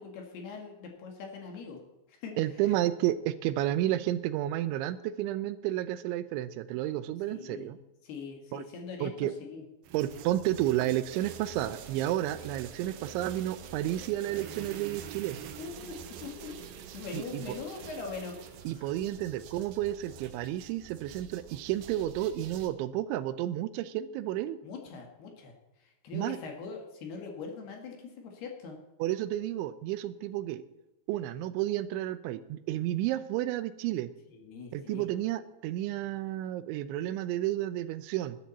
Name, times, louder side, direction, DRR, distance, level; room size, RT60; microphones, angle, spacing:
voice 1, 0.0-1.8 2.1-2.3 2.6-2.7 7.3-7.7 8.0-9.1 9.5-9.6 15.6-16.6 16.9-18.9 24.6-28.8 34.3-35.0, left 5 dB, 65° left, 1 dB, 3.8 m, -42 dB
voice 2, 2.4-7.8 8.5-8.6 9.0-9.3 9.9-15.4 17.1-17.6 18.7-24.6 26.1-26.4 29.0-30.6 31.1-34.1 34.7-38.4, right 13 dB, 90° right, 13 dB, 3.1 m, -31 dB
sound 1, 9.8-22.7, right 8 dB, 70° right, 2.3 m, -46 dB
20.0 x 10.5 x 4.2 m, 0.97 s
omnidirectional pair, 5.3 m